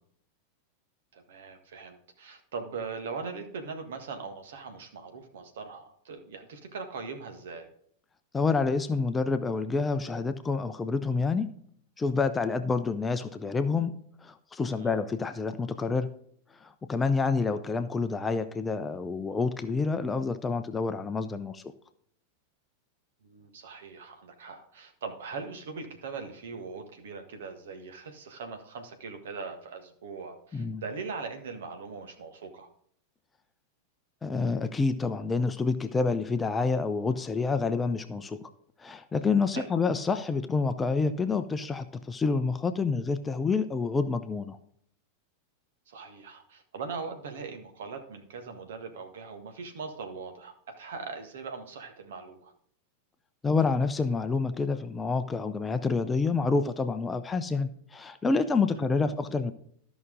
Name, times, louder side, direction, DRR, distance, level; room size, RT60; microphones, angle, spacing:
voice 1, 1.1-7.7 14.7-15.0 23.2-32.7 39.5-39.7 45.9-52.5 58.7-58.9, right 5 dB, 60° right, 6 dB, 1.7 m, -40 dB
voice 2, 8.3-11.5 12.0-14.0 14.2-16.1 16.6-21.6 30.5-30.8 34.2-38.5 38.8-44.6 53.4-59.5, left 4 dB, 15° left, 10 dB, 0.7 m, -28 dB
13.5 x 6.0 x 3.9 m, 0.64 s
figure-of-eight pair, 90°, 0 cm